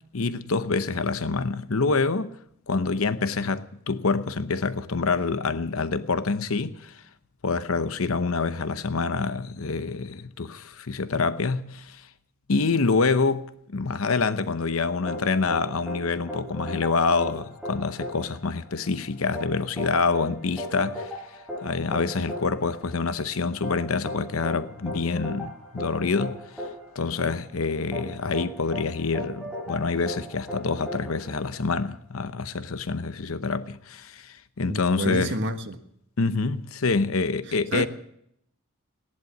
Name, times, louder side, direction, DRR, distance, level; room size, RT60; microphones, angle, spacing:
voice 1, 0.1-2.3 2.7-7.0 7.4-12.0 12.5-21.2 21.6-26.4 26.9-35.3 36.2-37.9, left 4 dB, 80° left, 0.8 m, -26 dB
sound 1, 15.1-31.9, equal, ahead, 7.2 m, -37 dB
voice 2, 34.7-35.8 37.5-37.9, right 1 dB, 60° right, 1.5 m, -29 dB
17.5 x 11.0 x 7.3 m
head